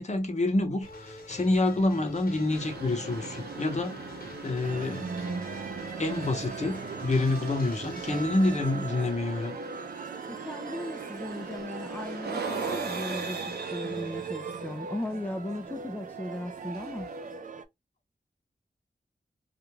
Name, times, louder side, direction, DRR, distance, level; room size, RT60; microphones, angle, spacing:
voice 1, 0.0-4.0 4.4-5.1 6.0-9.5, left 2 dB, 45° left, 0.8 m, -27 dB
sound 1, 0.8-8.6, left 3 dB, 65° left, 1.0 m, -46 dB
sound 2, 2.4-17.4, right 4 dB, 85° right, 0.7 m, -40 dB
sound 3, 4.6-17.6, right 5 dB, 55° right, 0.4 m, -39 dB
voice 2, 10.3-13.4 13.7-17.1, left 1 dB, 10° left, 0.4 m, -37 dB
2.5 x 2.2 x 3.0 m
wide cardioid pair, 60°, 17 cm